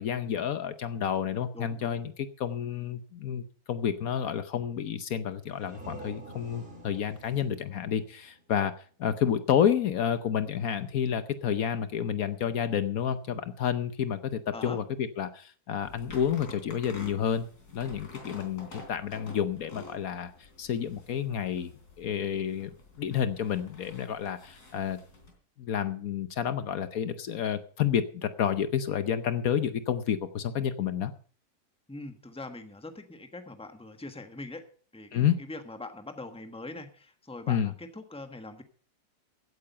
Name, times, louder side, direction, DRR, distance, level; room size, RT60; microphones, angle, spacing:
voice 1, 0.0-8.7 9.0-17.5 17.7-20.3 20.6-21.7 22.0-22.7 23.0-25.0 25.6-31.1 35.1-35.4 37.5-37.7, left 8 dB, 65° left, 12 dB, 1.2 m, -30 dB
voice 2, 1.5-2.0 14.5-14.8 31.9-34.6 34.9-38.6, left 2 dB, 5° left, 7 dB, 1.2 m, -42 dB
sound 1, 5.3-8.9, right 1 dB, 40° right, 3.0 m, -48 dB
sound 2, 15.8-25.3, left 2 dB, 85° left, 4.2 m, -49 dB
15.5 x 8.7 x 5.6 m, 0.43 s
omnidirectional pair, 1.7 m